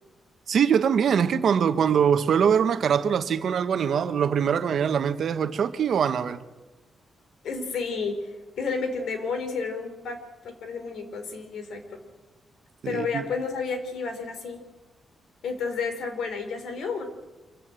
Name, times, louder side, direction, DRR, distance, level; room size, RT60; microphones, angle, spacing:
voice 1, 0.5-6.4 12.8-13.2, right 7 dB, 60° right, 1.2 m, -23 dB
voice 2, 7.4-8.2 8.6-10.2 10.4-12.0 12.9-14.6 15.4-17.1, left 4 dB, 75° left, 4.2 m, -31 dB
26.0 x 14.5 x 9.0 m
wide cardioid pair, 145°, 0 cm